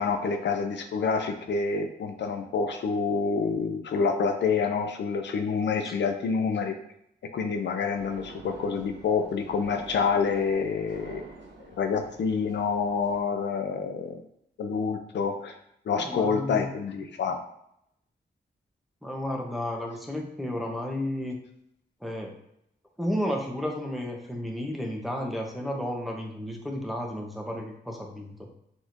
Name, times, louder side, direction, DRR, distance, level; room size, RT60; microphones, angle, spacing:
voice 1, 0.0-6.7 7.3-11.3 11.8-14.2 14.6-15.5 15.9-17.4, left 5 dB, 80° left, 6 dB, 0.4 m, -27 dB
sound 1, 7.9-13.2, right 3 dB, 75° right, 0.7 m, -48 dB
voice 2, 16.0-16.7 19.0-21.4 22.0-22.3 23.0-28.5, left 1 dB, ahead, 0 dB, 0.9 m, -32 dB
4.0 x 3.0 x 2.6 m, 0.76 s
cardioid pair, 55°, 18 cm